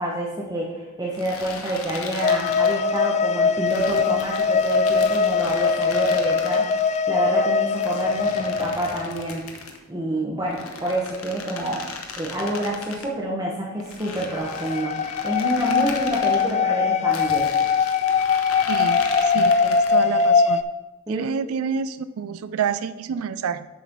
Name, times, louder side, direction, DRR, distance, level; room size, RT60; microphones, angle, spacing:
voice 1, 0.0-6.7 7.1-9.4 9.9-11.8 12.1-15.0 15.2-17.5 21.1-21.3, right 1 dB, 20° right, -3 dB, 1.1 m, -27 dB
sound 1, 1.1-3.0 3.7-7.0 7.7-9.8 10.4-13.1 13.8-16.5 17.1-20.1, left 4 dB, 85° left, 1.1 m, -38 dB
sound 2, 2.2-9.2 14.3-20.6, left 5 dB, 30° left, 0.3 m, -21 dB
voice 2, 18.7-20.6 21.1-23.7, right 6 dB, 80° right, 13 dB, 0.4 m, -28 dB
7.4 x 5.9 x 5.4 m, 1.1 s
head